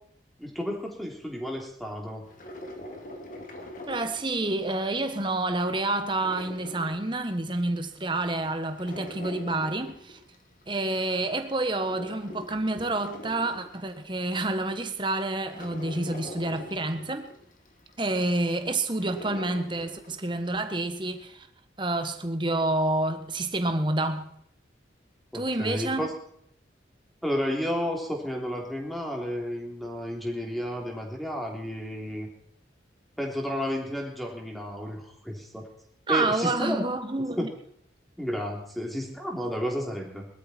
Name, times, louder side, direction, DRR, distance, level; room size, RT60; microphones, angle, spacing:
voice 1, 0.4-2.3 25.3-26.1 27.2-32.3 33.2-35.7 36.1-36.8 37.4-37.5 38.2-40.3, equal, ahead, 3.2 m, -32 dB
sound 1, 2.3-4.9 5.2-7.6 8.0-10.6 11.1-14.2 14.7-14.8 15.2-20.4 20.7-20.8, left 1 dB, 45° left, 2.5 m, -43 dB
voice 2, 3.9-10.2 10.7-17.3 18.0-21.5 21.8-24.4 25.3-26.1 36.1-37.5, right 2 dB, 25° right, 1.3 m, -28 dB
20.0 x 13.0 x 4.4 m
head